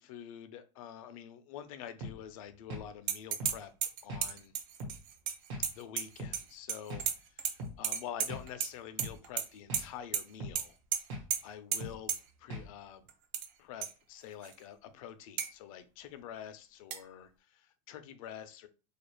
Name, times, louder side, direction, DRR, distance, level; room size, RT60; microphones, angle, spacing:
voice 1, 0.0-3.7 4.0-4.5 5.6-10.8 11.4-12.1 12.4-13.1 13.6-18.7, left 9 dB, 75° left, 10 dB, 0.5 m, -47 dB
sound 1, 2.0-2.2 2.7-2.9 3.4-3.6 4.1-4.3 4.8-5.0 5.5-5.7 6.2-6.4 6.9-7.1 7.6-7.8 8.3-8.5 9.0-9.2 9.7-9.9 10.4-10.6 11.1-11.3 11.8-12.0 12.5-12.7, equal, 75° right, 1.1 m, -41 dB
sound 2, 3.1-3.5 3.8-6.4 6.7-7.5 7.8-8.7 9.0-9.5 9.7-9.8 10.1-10.2 10.6-10.7 10.9-11.0 11.3-11.4 11.7-11.8 12.1-12.2 13.1-13.5 13.8-13.9 14.4-14.5 15.4-15.5 16.9-17.0, right 8 dB, 50° right, 0.4 m, -33 dB
2.4 x 2.3 x 3.0 m, 0.33 s
supercardioid pair, 145°, 18 cm